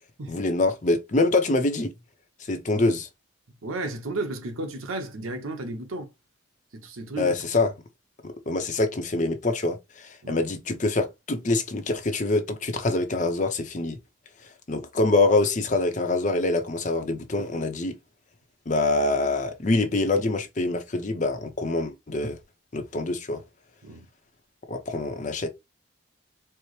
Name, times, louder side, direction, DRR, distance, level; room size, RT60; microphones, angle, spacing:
voice 1, 0.3-1.9 2.5-3.1 7.2-7.7 8.2-14.0 14.7-17.9 18.7-22.4 22.7-23.4 24.7-25.5, left 2 dB, 35° left, 0.6 m, -25 dB
voice 2, 3.6-6.1 6.7-7.3 10.2-10.4 23.8-24.1, right 2 dB, 90° right, 0.8 m, -33 dB
4.4 x 2.0 x 3.1 m
head